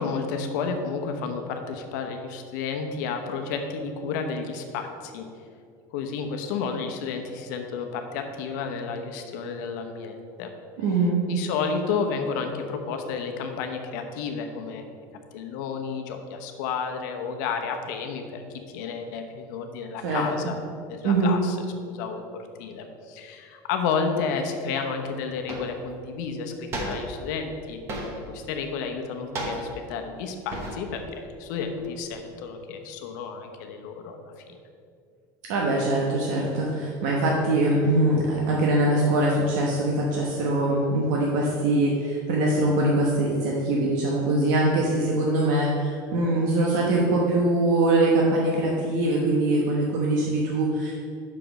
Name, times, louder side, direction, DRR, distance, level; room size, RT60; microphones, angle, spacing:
voice 1, 0.0-5.3 5.9-10.5 11.3-14.9 15.3-18.4 18.7-20.6 20.9-21.6 21.8-27.8 28.3-34.6, left 5 dB, 75° left, 5 dB, 0.9 m, -31 dB
voice 2, 10.8-11.2 20.0-20.2 21.0-21.4 35.5-50.9, right 2 dB, 75° right, -2 dB, 1.1 m, -23 dB
sound 1, 24.8-24.9 25.5-25.9 26.7-27.3 27.9-28.4 29.4-29.9 30.5-31.0 31.3-32.1, right 1 dB, 25° right, 1.0 m, -34 dB
6.0 x 5.0 x 6.4 m, 2.4 s
cardioid pair, 180°, 10 cm